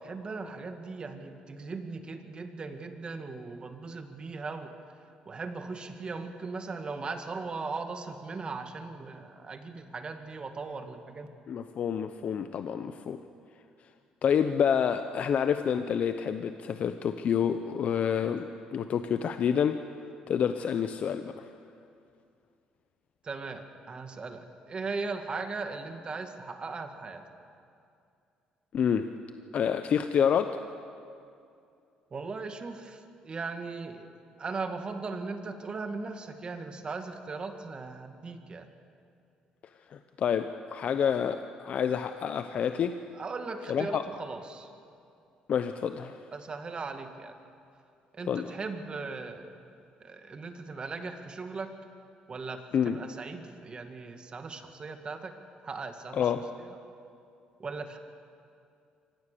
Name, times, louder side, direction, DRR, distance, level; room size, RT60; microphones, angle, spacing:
voice 1, 0.0-4.7 5.3-11.3 23.2-27.2 32.1-38.7 43.1-44.7 46.3-47.4 48.1-49.5 50.0-51.7 52.3-55.3 55.6-56.3 57.6-58.0, right 4 dB, 35° right, 6 dB, 2.1 m, -38 dB
voice 2, 11.5-13.2 14.2-19.8 20.3-21.5 28.7-29.1 29.5-30.6 39.9-43.0 43.7-44.0 45.5-46.2 48.3-48.5 52.7-53.0 56.1-56.4, left 8 dB, 55° left, 9 dB, 0.8 m, -28 dB
24.5 x 17.5 x 6.9 m, 2.5 s
cardioid pair, 85°, 3 cm